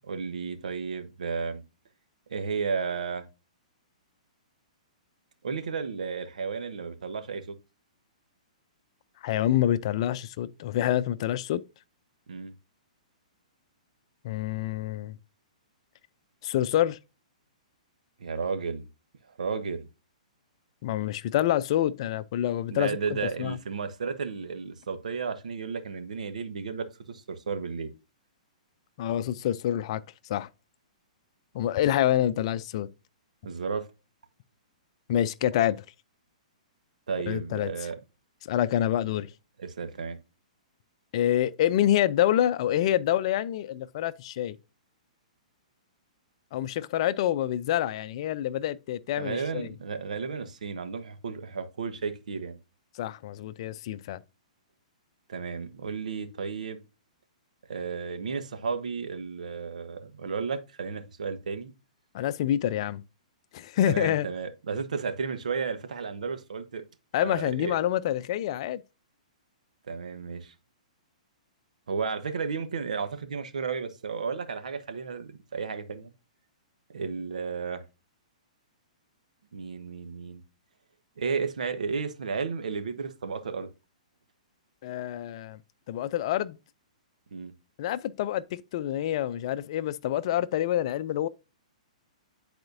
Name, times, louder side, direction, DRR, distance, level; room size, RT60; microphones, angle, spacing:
voice 1, 0.0-1.6 2.3-3.2 5.4-7.5 12.3-12.5 18.2-18.9 19.4-19.9 22.7-27.9 33.4-33.9 37.1-38.0 39.6-40.2 49.2-52.6 55.3-56.8 57.7-61.7 63.9-66.8 67.2-67.7 69.9-70.5 71.9-76.1 76.9-77.8 79.5-80.4 81.2-83.7 87.3-87.5, right 5 dB, 75° right, 1.1 m, -33 dB
voice 2, 9.2-11.6 14.2-15.2 16.4-17.0 20.8-23.0 23.4-23.6 29.0-30.0 30.3-30.5 31.5-32.9 35.1-35.8 37.3-37.7 38.5-39.3 41.1-44.6 46.5-49.7 53.0-54.2 62.1-63.0 63.5-64.3 67.1-68.8 84.8-85.6 85.9-86.6 87.8-91.3, left 12 dB, 50° left, 0.5 m, -27 dB
10.5 x 4.3 x 2.6 m
hypercardioid pair, 125°, 4 cm